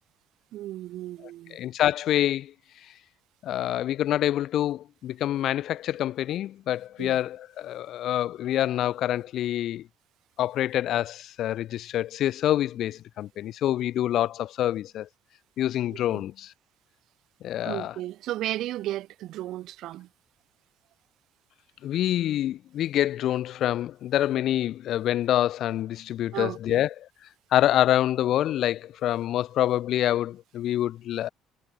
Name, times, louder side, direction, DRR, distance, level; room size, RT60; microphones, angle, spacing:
voice 1, 0.5-1.6 7.0-7.2 16.1-16.2 17.6-20.1 26.3-26.8, right 14 dB, 65° right, 0.8 m, -34 dB
voice 2, 1.5-2.5 3.4-9.8 10.4-15.1 15.6-16.5 17.4-17.9 21.8-26.9 27.5-31.3, left 12 dB, 55° left, 0.8 m, -26 dB
cardioid pair, 140°, 0 cm